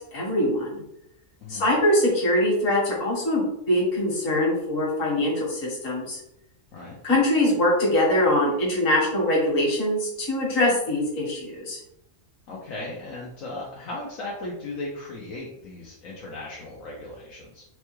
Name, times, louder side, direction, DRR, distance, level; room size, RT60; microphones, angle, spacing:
voice 1, 0.1-0.8 1.5-6.2 7.0-11.8, left 1 dB, 70° left, -5 dB, 1.8 m, -23 dB
voice 2, 12.5-17.6, left 2 dB, 85° left, -4 dB, 1.2 m, -37 dB
4.6 x 2.2 x 3.0 m, 0.82 s
omnidirectional pair, 1.4 m